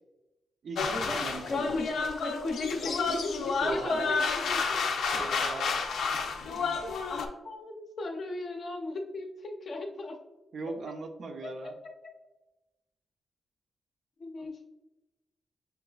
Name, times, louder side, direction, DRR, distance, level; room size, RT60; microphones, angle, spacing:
voice 1, 0.6-1.9 3.6-4.1 5.2-5.8 10.5-11.7, right 3 dB, 50° right, 5 dB, 0.4 m, -38 dB
sound 1, 0.8-7.3, left 4 dB, 85° left, 0.5 m, -30 dB
voice 2, 1.5-4.8 6.8-6.9 7.4-10.2 11.6-11.7 14.2-14.7, left 2 dB, 40° left, 2 dB, 0.5 m, -36 dB
6.3 x 2.3 x 2.3 m, 1.0 s
wide cardioid pair, 175°, 0 cm